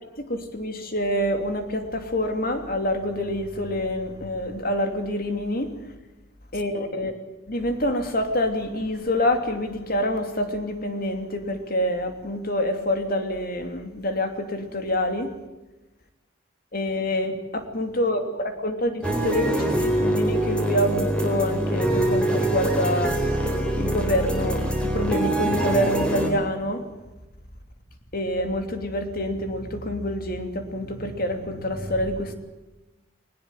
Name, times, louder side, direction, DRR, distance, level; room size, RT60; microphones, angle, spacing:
voice 1, 0.2-5.7 6.5-7.1 7.5-15.3 16.7-23.2 23.8-26.8 28.1-32.3, left 1 dB, 45° left, 6 dB, 3.0 m, -26 dB
sound 1, 19.0-26.3, right 1 dB, 5° left, 4.2 m, -24 dB
20.5 x 19.5 x 9.1 m, 1.1 s
head